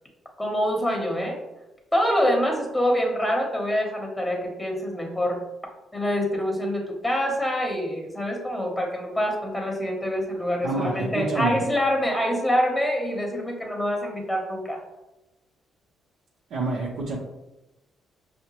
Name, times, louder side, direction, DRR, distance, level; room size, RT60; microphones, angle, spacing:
voice 1, 0.4-1.4 1.9-5.4 5.9-14.8, equal, 10° left, 1 dB, 0.9 m, -25 dB
voice 2, 10.6-11.6 16.5-17.2, right 3 dB, 80° right, -6 dB, 0.8 m, -27 dB
5.6 x 2.1 x 2.9 m, 0.98 s
cardioid pair, 90°, 0 cm